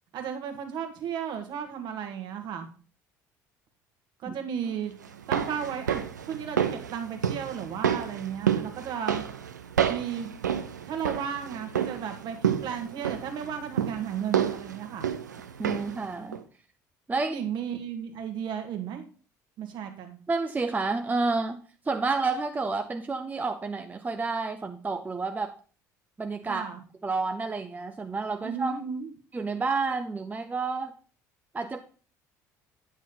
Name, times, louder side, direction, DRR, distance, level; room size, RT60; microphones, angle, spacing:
voice 1, 0.1-2.7 4.2-4.9 5.3-9.2 9.9-10.3 10.9-15.1 17.2-19.0 19.6-20.2 26.5-26.8 28.4-29.1, right 8 dB, 50° right, 5 dB, 1.6 m, -34 dB
sound 1, 5.0-16.1 16.3-16.4, right 8 dB, 80° right, 0.6 m, -30 dB
voice 2, 15.6-16.4 17.1-17.4 20.3-21.6 21.9-25.5 26.2-26.6 27.0-28.8 29.3-30.9 31.5-31.8, right 3 dB, 15° right, 6 dB, 0.7 m, -30 dB
9.1 x 6.3 x 3.8 m, 0.38 s
figure-of-eight pair, 60°, 9 cm